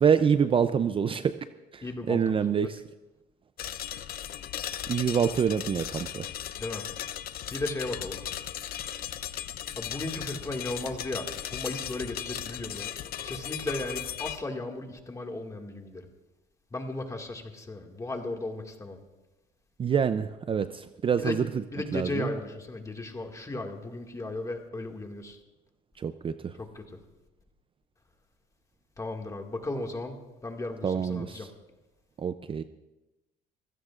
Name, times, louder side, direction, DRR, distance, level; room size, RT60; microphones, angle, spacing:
voice 1, 0.0-1.3 1.7-2.8 4.9-6.3 19.8-21.5 21.9-22.3 26.0-26.5 30.8-31.5 32.2-32.6, right 7 dB, 30° right, 11 dB, 0.5 m, -26 dB
voice 2, 1.8-2.7 6.6-6.8 7.5-8.2 9.8-12.9 13.2-16.1 16.7-19.0 21.2-21.4 21.7-25.4 26.6-26.8 29.0-30.2 30.4-31.5, left 2 dB, 20° left, 2 dB, 2.0 m, -35 dB
sound 1, 3.6-14.4, left 11 dB, 60° left, 0.7 m, -37 dB
26.0 x 16.0 x 2.5 m, 1.0 s
cardioid pair, 110°, 17 cm